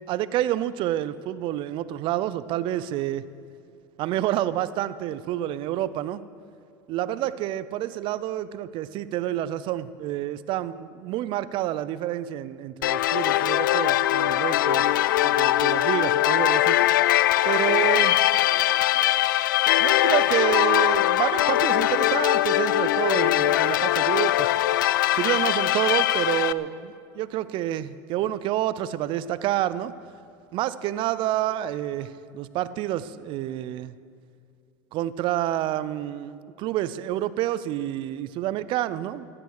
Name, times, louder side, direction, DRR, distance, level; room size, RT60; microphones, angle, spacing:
voice 1, 0.1-3.2 4.0-6.2 6.9-16.8 17.4-18.2 19.8-24.5 25.1-29.9 30.5-33.9 34.9-39.3, right 13 dB, 55° right, 16 dB, 0.6 m, -28 dB
sound 1, 12.8-26.5, left 14 dB, 85° left, 0.4 m, -21 dB
15.0 x 11.5 x 6.5 m, 2.3 s
hypercardioid pair, 95°, 10 cm